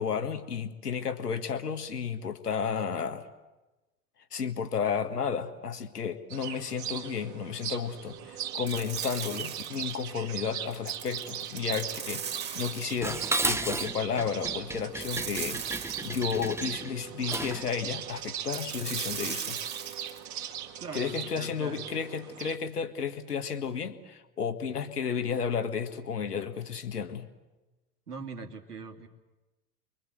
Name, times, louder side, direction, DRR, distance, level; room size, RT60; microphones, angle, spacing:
voice 1, 0.0-3.3 4.3-19.6 20.9-27.3, left 6 dB, 80° left, 9 dB, 1.7 m, -32 dB
sound 1, 6.3-22.6, right 10 dB, 40° right, 2.2 m, -39 dB
sound 2, 8.7-10.0 10.7-13.2 15.0-16.7 18.5-20.2, right 7 dB, 20° right, 2.7 m, -39 dB
Dishes pots and pans, 13.0-17.7, right 2 dB, 5° right, 0.8 m, -33 dB
voice 2, 20.8-21.9 28.1-29.1, right 5 dB, 80° right, 3 dB, 2.7 m, -41 dB
30.0 x 23.5 x 7.8 m, 1.1 s
figure-of-eight pair, 85°, 46 cm